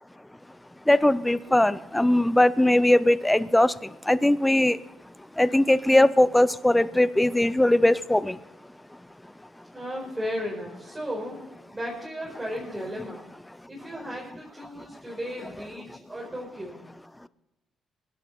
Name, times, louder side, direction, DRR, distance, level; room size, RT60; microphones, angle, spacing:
voice 1, 0.9-4.8 5.4-8.4, left 1 dB, 10° left, 16 dB, 0.6 m, -20 dB
voice 2, 9.7-11.4 11.7-13.2 13.7-16.9, equal, 15° right, -4 dB, 4.9 m, -35 dB
23.0 x 11.0 x 4.3 m, 0.97 s
cardioid pair, 90°, 0 cm